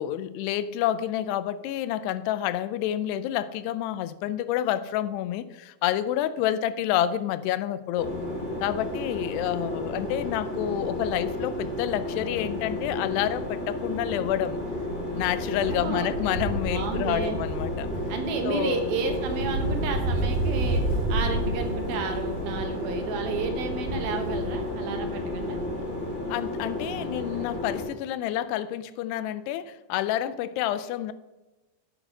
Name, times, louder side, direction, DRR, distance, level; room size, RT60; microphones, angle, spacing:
voice 1, 0.0-8.1 8.6-14.6 15.2-17.9 18.5-18.8 26.3-31.1, left 12 dB, 85° left, 14 dB, 2.7 m, -29 dB
sound 1, 8.0-27.8, left 1 dB, 10° right, 3.2 m, -32 dB
Wind, 8.9-9.2 9.6-9.7 9.9-13.5 13.8-25.9 26.2-26.3, right 1 dB, 55° right, 3.8 m, -33 dB
voice 2, 15.6-16.1 16.7-17.4 18.1-20.8 21.1-25.6, right 5 dB, 70° right, 4 dB, 2.8 m, -32 dB
10.0 x 7.7 x 6.4 m, 1.1 s
omnidirectional pair, 4.8 m